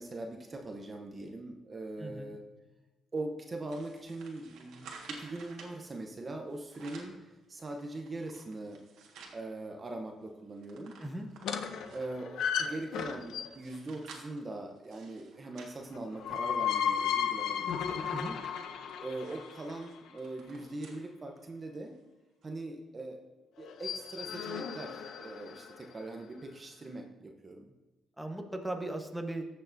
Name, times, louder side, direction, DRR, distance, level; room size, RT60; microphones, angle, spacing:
voice 1, 0.0-2.4 3.1-8.8 9.3-11.0 11.9-18.1 19.0-22.0 22.4-23.2 23.6-27.7, right 2 dB, 30° right, 3 dB, 0.9 m, -41 dB
voice 2, 2.0-2.3 11.0-11.3 18.1-18.4 28.2-29.5, right 1 dB, 5° right, 3 dB, 1.1 m, -37 dB
sound 1, 3.7-5.8 6.5-7.2 7.7-9.4 9.9-10.0 10.2-12.2 12.8-16.5 17.0-17.1 17.4-21.0 21.5-21.6 22.4-22.5, right 4 dB, 85° right, 1.6 m, -52 dB
sound 2, 11.4-13.7 15.9-20.0 23.6-25.8, left 8 dB, 75° left, 0.7 m, -34 dB
14.5 x 6.6 x 2.7 m, 1.1 s
cardioid pair, 90°, 0 cm